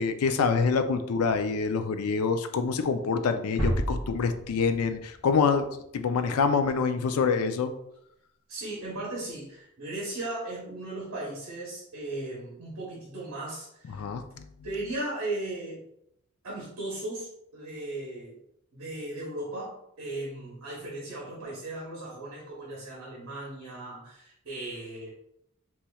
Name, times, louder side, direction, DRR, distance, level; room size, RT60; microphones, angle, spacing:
voice 1, 0.0-5.7 5.9-7.7 13.9-14.5, left 5 dB, 85° left, 8 dB, 0.4 m, -26 dB
sound 1, 3.6-5.5, right 1 dB, 30° left, 1.3 m, -31 dB
voice 2, 8.5-14.1 14.6-15.8 16.4-18.4 18.7-25.1, right 2 dB, 65° right, -5 dB, 1.0 m, -37 dB
4.2 x 3.0 x 2.3 m, 0.76 s
head